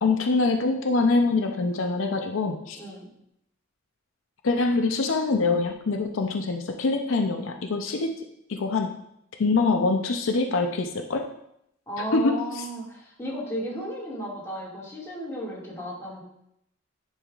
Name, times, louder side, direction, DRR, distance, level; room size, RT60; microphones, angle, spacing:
voice 1, 0.0-2.8 4.4-8.1 8.5-9.0 9.4-11.3 12.1-12.6, left 3 dB, 75° left, 4 dB, 0.6 m, -24 dB
voice 2, 2.8-3.1 11.9-16.2, equal, 15° left, -6 dB, 2.1 m, -34 dB
10.0 x 5.5 x 2.4 m, 0.77 s
head